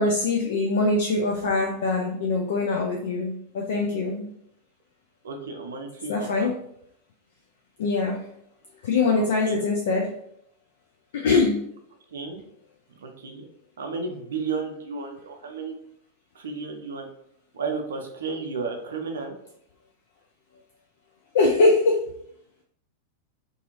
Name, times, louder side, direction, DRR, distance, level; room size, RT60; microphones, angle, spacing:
voice 1, 0.0-4.3 6.1-6.5 7.8-8.3 8.8-10.1 11.1-11.6 21.3-22.0, left 3 dB, 60° left, 0 dB, 0.3 m, -23 dB
voice 2, 5.2-6.5 9.1-9.6 12.1-12.4 13.0-13.5 13.8-15.7 16.3-17.1 17.5-19.3, right 4 dB, 65° right, 4 dB, 0.5 m, -33 dB
2.6 x 2.4 x 2.8 m, 0.73 s
figure-of-eight pair, 90°, 0 cm